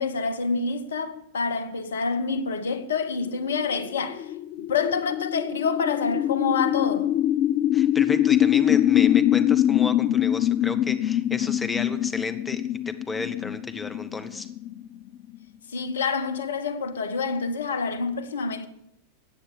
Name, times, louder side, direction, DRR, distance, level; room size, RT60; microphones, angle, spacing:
voice 1, 0.0-4.3 4.6-7.1 15.7-18.7, left 5 dB, 65° left, 1.0 m, -27 dB
sound 1, 3.3-15.4, left 11 dB, 35° left, 0.4 m, -24 dB
voice 2, 7.7-14.5, left 3 dB, 15° left, 0.9 m, -33 dB
14.5 x 8.8 x 7.1 m
figure-of-eight pair, 90°, 0 cm